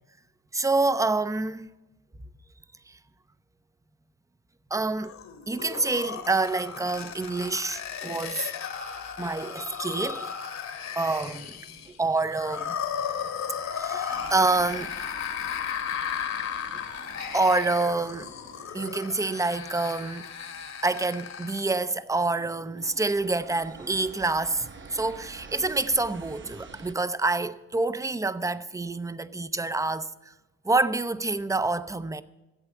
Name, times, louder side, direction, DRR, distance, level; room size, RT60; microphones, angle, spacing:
voice 1, 0.5-1.7 4.7-5.1 5.5-8.6 9.2-10.3 11.0-11.5 11.9-12.8 13.7-14.9 16.7-16.8 17.3-18.3 18.7-20.2 20.8-30.1 30.6-32.2, right 3 dB, 10° right, 0.6 m, -27 dB
sound 1, 5.0-21.7, left 7 dB, 65° left, 1.7 m, -35 dB
sound 2, 14.1-21.0 21.5-21.8 22.1-26.9, right 5 dB, 40° right, 1.0 m, -49 dB
14.5 x 8.0 x 7.1 m
cardioid pair, 90°, 30 cm